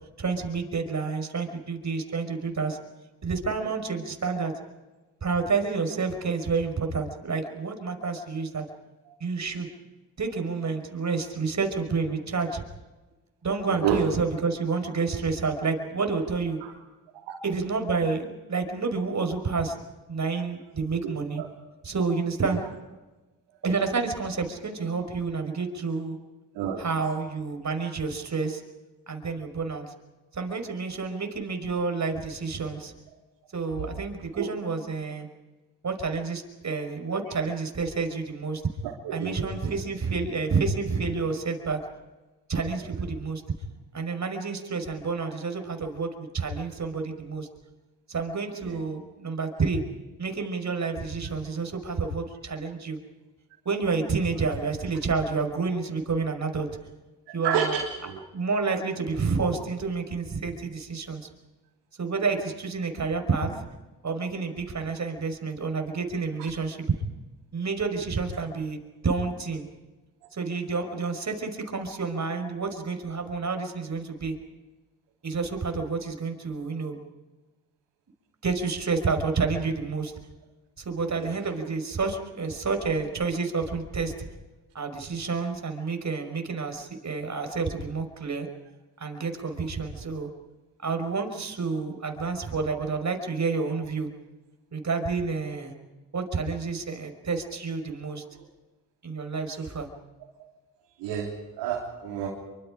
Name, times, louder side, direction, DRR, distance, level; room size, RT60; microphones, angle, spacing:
voice 1, 0.2-2.8 3.2-4.5 5.2-8.6 9.2-9.7 10.2-12.6 13.4-16.6 17.4-19.8 20.1-21.4 21.8-22.6 23.6-26.2 26.8-28.6 29.1-29.9 30.3-32.9 33.5-35.3 35.8-38.6 39.1-41.8 42.5-43.4 43.9-47.5 48.1-49.8 50.2-53.0 53.7-56.7 57.3-57.8 58.3-61.3 62.0-63.7 64.0-66.9 67.5-69.7 70.3-74.3 75.2-77.0 78.4-80.1 80.8-84.1 84.7-88.5 89.0-90.3 90.8-94.1 94.7-95.7 96.1-98.2 99.0-99.9, right 4 dB, 40° right, 6 dB, 5.5 m, -29 dB
voice 2, 39.0-39.7 48.6-48.8 57.4-58.2 81.2-81.3 101.0-101.3 101.6-102.3, right 8 dB, 85° right, -1 dB, 3.5 m, -29 dB
27.5 x 25.0 x 5.1 m, 1.2 s
supercardioid pair, 55°, 42 cm